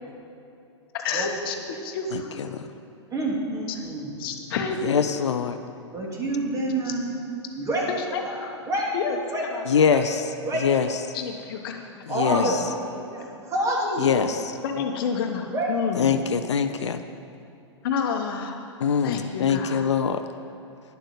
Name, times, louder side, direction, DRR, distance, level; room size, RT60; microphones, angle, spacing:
voice 1, 1.0-2.5 4.2-5.4 6.9-7.0 7.9-8.5 8.9-9.6 11.1-12.6 14.6-16.1 17.8-18.7 19.0-19.8, left 6 dB, 50° left, 4 dB, 1.1 m, -30 dB
voice 2, 3.1-4.2 5.9-7.1 7.6-7.9 8.2-8.9 9.3-9.4 9.9-10.0 10.5-10.9 12.1-14.4 15.5-15.7, right 1 dB, 20° right, -2 dB, 2.6 m, -28 dB
voice 3, 4.8-5.6 9.7-10.2 10.6-10.9 12.1-12.6 14.0-14.5 16.0-17.0 18.8-20.2, left 7 dB, 70° left, 9 dB, 0.6 m, -23 dB
10.5 x 7.5 x 6.7 m, 2.7 s
figure-of-eight pair, 105°, 15 cm